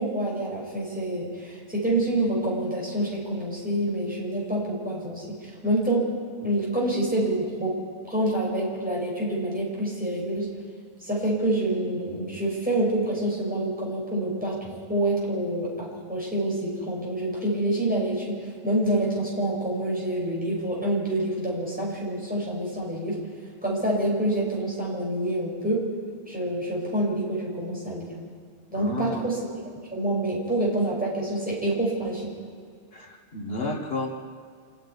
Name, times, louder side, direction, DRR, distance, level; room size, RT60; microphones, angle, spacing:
voice 1, 0.0-6.1 6.4-7.8 8.1-10.5 11.0-14.6 14.9-23.2 23.6-25.8 26.3-28.2 28.7-29.4 29.9-32.3, right 1 dB, 5° right, -4 dB, 6.0 m, -27 dB
voice 2, 28.7-29.3 32.9-34.1, left 2 dB, 55° left, 2 dB, 1.8 m, -31 dB
27.0 x 10.0 x 9.7 m, 2.2 s
omnidirectional pair, 1.2 m